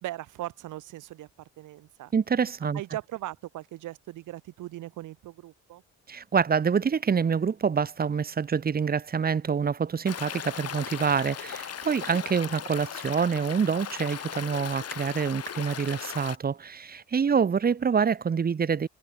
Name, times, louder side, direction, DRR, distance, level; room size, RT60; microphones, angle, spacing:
voice 1, 0.0-2.1 2.7-5.8, right 15 dB, 85° right, 2.7 m, -39 dB
voice 2, 2.1-2.8 6.1-18.9, right 6 dB, 30° right, 0.9 m, -26 dB
Stream, 10.1-16.4, left 9 dB, 55° left, 2.5 m, -38 dB
cardioid pair, 90°, 30 cm